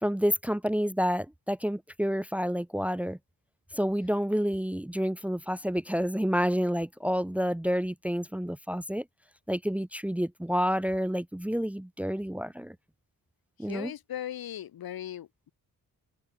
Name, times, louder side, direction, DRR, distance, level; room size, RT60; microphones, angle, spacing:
voice 1, 0.0-3.2 3.7-9.0 9.5-12.8 13.6-13.9, equal, 5° right, 1.1 m, -29 dB
voice 2, 13.6-15.5, left 11 dB, 90° left, 3.7 m, -38 dB
open air
wide cardioid pair, 130°, 35 cm